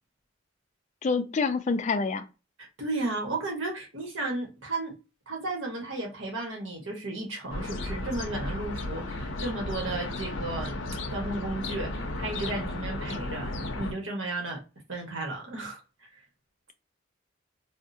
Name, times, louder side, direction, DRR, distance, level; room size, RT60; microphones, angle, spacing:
voice 1, 1.0-2.2, left 4 dB, 35° left, 0.3 m, -27 dB
voice 2, 2.6-4.9 5.3-10.7 11.1-14.6 14.9-15.8, right 2 dB, 70° right, 1.2 m, -34 dB
sound 1, 7.5-13.9, left 2 dB, 75° left, 0.6 m, -34 dB
3.6 x 2.1 x 2.6 m
head